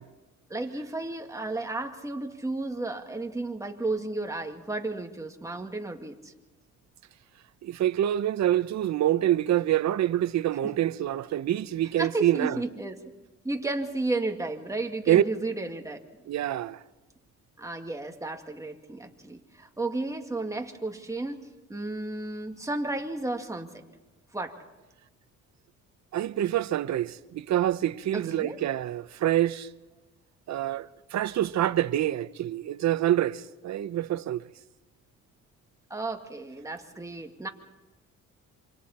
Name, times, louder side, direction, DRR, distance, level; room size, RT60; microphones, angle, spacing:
voice 1, 0.5-6.3 10.6-10.7 12.0-13.0 13.4-16.0 17.6-21.4 21.7-23.7 24.3-24.6 28.1-28.6 35.9-37.5, right 2 dB, 10° right, 2.2 m, -33 dB
voice 2, 7.6-12.6 15.1-15.2 16.3-16.8 26.1-29.7 30.5-34.4, right 12 dB, 65° right, 0.8 m, -26 dB
27.5 x 25.5 x 4.3 m
cardioid pair, 90°, 30 cm